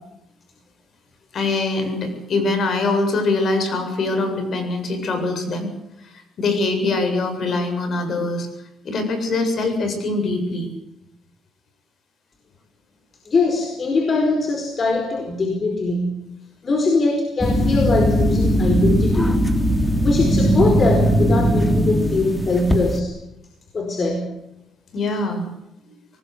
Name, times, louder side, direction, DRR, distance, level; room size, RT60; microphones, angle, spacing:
voice 1, 1.3-5.7 6.0-8.5 8.8-10.7 24.9-25.5, left 2 dB, 60° left, 7 dB, 7.8 m, -23 dB
voice 2, 13.2-16.2 16.6-19.5 20.0-23.1 23.7-24.3, left 3 dB, 40° left, 4 dB, 4.7 m, -21 dB
sound 1, 17.4-23.0, equal, 10° left, 3.6 m, -19 dB
25.0 x 19.5 x 8.2 m, 0.86 s
cardioid pair, 90°, 0 cm